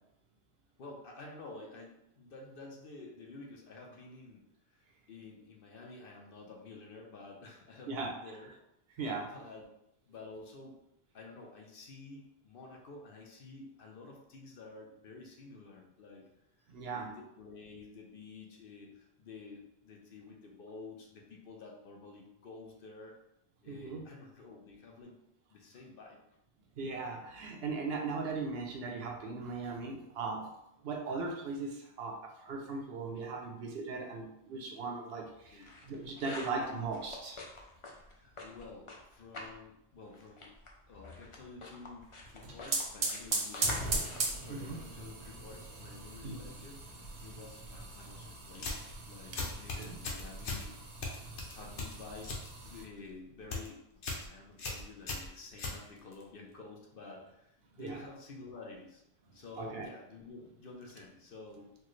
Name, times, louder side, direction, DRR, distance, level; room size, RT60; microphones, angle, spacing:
voice 1, 0.8-8.5 9.3-9.7 10.1-10.8 11.1-16.3 16.9-23.2 23.6-25.2 25.5-26.2 35.5-35.7 38.1-40.5 40.9-44.0 44.4-48.8 49.1-50.8 51.2-53.8 54.1-59.0 59.3-61.7, left 3 dB, 60° left, 0 dB, 0.8 m, -50 dB
voice 2, 8.9-9.3 16.7-17.1 23.7-24.0 26.8-30.6 30.8-37.4 44.5-44.8 46.2-46.4 49.3-49.4 49.8-49.9 57.8-58.0 59.3-59.8, right 4 dB, 70° right, 2 dB, 0.8 m, -38 dB
sound 1, 35.3-39.6 39.9-45.3, left 2 dB, 40° left, 0.4 m, -48 dB
sound 2, 42.2-52.8, right 2 dB, 90° right, 1.1 m, -39 dB
sound 3, 48.5-48.9 49.4-50.7 51.0-52.5 52.8-53.1 53.4-53.7 54.0-54.3 54.6-56.2, left 3 dB, 90° left, 1.1 m, -38 dB
4.4 x 2.1 x 3.1 m, 0.81 s
omnidirectional pair, 1.1 m